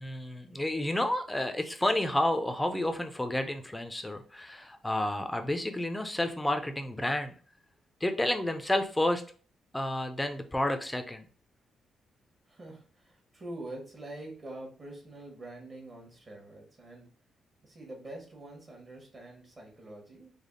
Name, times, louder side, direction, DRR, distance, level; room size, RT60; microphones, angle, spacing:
voice 1, 0.0-7.3 8.0-9.2 9.7-11.3, left 1 dB, 10° left, 7 dB, 0.5 m, -30 dB
voice 2, 12.5-17.1 17.6-20.3, right 1 dB, 35° right, -1 dB, 1.1 m, -45 dB
3.4 x 2.1 x 3.7 m, 0.40 s
cardioid pair, 115°, 0 cm